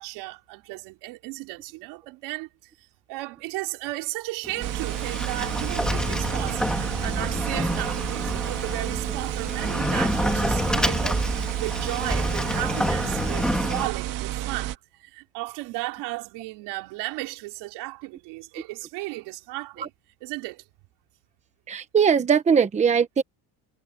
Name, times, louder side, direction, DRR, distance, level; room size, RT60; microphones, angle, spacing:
voice 1, 0.0-2.7 3.1-11.0 11.6-19.9 20.2-20.6, right 21 dB, 80° right, 4.0 m, -35 dB
Sliding door, 4.4-13.9, left 1 dB, ahead, 2.0 m, -28 dB
sound 1, 4.6-14.7, right 14 dB, 55° right, 1.9 m, -31 dB
voice 2, 21.7-23.2, right 7 dB, 15° right, 1.0 m, -21 dB
cardioid pair, 165°, 39 cm